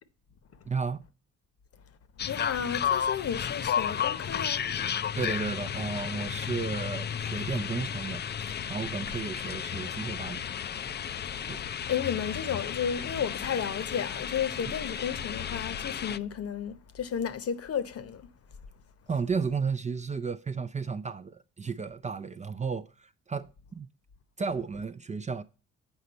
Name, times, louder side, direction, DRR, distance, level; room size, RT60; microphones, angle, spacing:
voice 1, 0.6-1.1 5.2-10.4 11.5-11.6 14.7-14.8 19.1-23.9 24.4-25.4, right 5 dB, 25° right, 0.5 m, -33 dB
voice 2, 2.2-4.6 11.9-18.3, left 8 dB, 50° left, 0.9 m, -33 dB
sound 1, 2.2-16.2, left 8 dB, 35° left, 0.4 m, -33 dB
8.0 x 5.1 x 4.1 m
cardioid pair, 90°, 30 cm